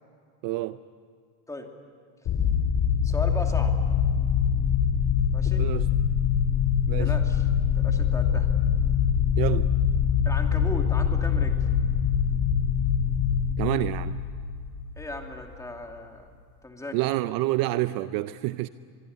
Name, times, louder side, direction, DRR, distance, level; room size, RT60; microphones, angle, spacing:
voice 1, 0.4-0.8 5.6-5.9 6.9-7.1 9.4-9.7 13.6-14.2 16.9-18.7, right 17 dB, 50° right, 0.7 m, -28 dB
sound 1, 2.3-15.3, left 7 dB, 40° left, 2.7 m, -24 dB
voice 2, 3.0-3.7 5.3-5.6 7.0-7.4 7.7-8.5 10.2-11.6 15.0-16.3 16.6-17.0, left 1 dB, 5° left, 2.7 m, -36 dB
25.5 x 22.0 x 9.6 m
supercardioid pair, 145°, 45 cm